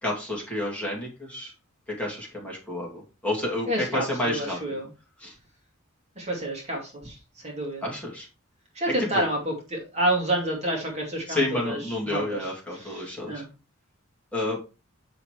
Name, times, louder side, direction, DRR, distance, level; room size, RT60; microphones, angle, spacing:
voice 1, 0.0-1.5 1.9-4.6 5.2-5.4 7.8-8.3 9.1-9.3 11.3-13.4 14.3-14.6, left 1 dB, 5° left, -4 dB, 2.5 m, -30 dB
voice 2, 3.7-4.9 6.2-7.9 8.7-11.8 12.1-12.5 12.7-13.5, right 1 dB, 30° right, -1 dB, 2.2 m, -29 dB
6.8 x 5.8 x 3.2 m, 0.31 s
head